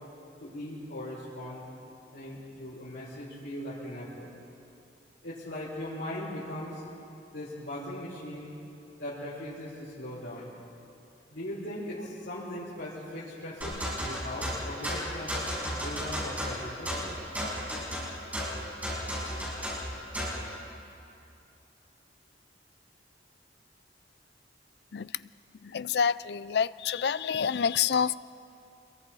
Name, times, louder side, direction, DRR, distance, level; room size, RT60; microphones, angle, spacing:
voice 1, 0.4-1.7 2.1-4.3 5.2-6.8 7.3-8.5 9.0-10.5 11.3-15.3 15.6-17.0, left 1 dB, 90° left, -10 dB, 5.7 m, -39 dB
sound 1, 13.6-20.4, equal, 10° right, 6.5 m, -34 dB
voice 2, 25.6-28.1, left 7 dB, 65° left, 17 dB, 0.4 m, -27 dB
27.0 x 22.0 x 4.8 m, 2.7 s
head